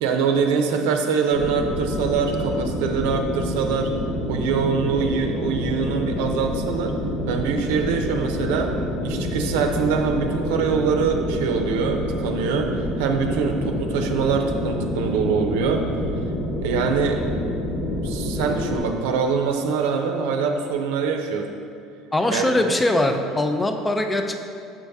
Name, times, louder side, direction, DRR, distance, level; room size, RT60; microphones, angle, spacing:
voice 1, 0.0-3.9 4.3-6.9 7.3-8.7 9.0-15.8 16.6-17.2 18.0-21.5 22.3-22.5, right 5 dB, 90° right, 4 dB, 0.6 m, -24 dB
sound 1, 1.3-18.8, left 1 dB, 45° left, 1.2 m, -27 dB
voice 2, 22.1-24.3, left 1 dB, 10° left, 6 dB, 0.5 m, -21 dB
6.2 x 5.3 x 3.5 m, 2.4 s
cardioid pair, 130°, 0 cm